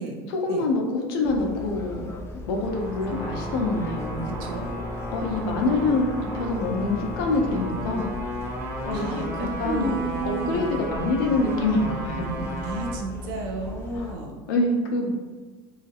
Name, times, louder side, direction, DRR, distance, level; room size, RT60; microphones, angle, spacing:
voice 1, 0.3-2.1 2.5-4.3 5.1-6.1 6.3-8.1 8.8-9.9 10.3-12.5 14.0-14.1 14.5-15.1, left 2 dB, 80° left, 1 dB, 0.6 m, -26 dB
sound 1, 1.2-14.1, left 2 dB, 20° left, 0.4 m, -38 dB
sound 2, 2.6-13.0, equal, 15° right, 0.7 m, -34 dB
voice 2, 4.2-4.7 8.9-10.9 12.6-14.3 15.0-15.1, right 3 dB, 70° right, 1 dB, 0.6 m, -32 dB
2.9 x 2.4 x 2.8 m, 1.4 s
cardioid pair, 145°, 12 cm